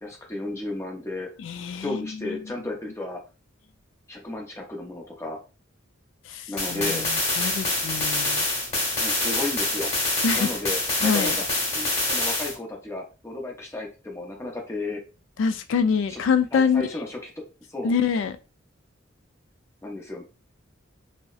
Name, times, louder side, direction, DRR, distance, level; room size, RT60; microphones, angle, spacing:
voice 1, 0.0-1.3 1.8-3.2 4.1-5.4 6.5-7.1 9.0-9.9 10.3-11.4 11.7-15.0 16.1-16.2 16.5-17.9 19.8-20.2, left 2 dB, 15° left, 0 dB, 0.6 m, -33 dB
voice 2, 1.4-2.4 6.3-8.5 10.2-10.5 11.0-11.4 15.4-16.8 17.8-18.3, left 6 dB, 70° left, 9 dB, 0.3 m, -25 dB
sound 1, 6.6-12.6, left 2 dB, 35° left, 1.1 m, -26 dB
2.7 x 2.0 x 2.3 m, 0.31 s
head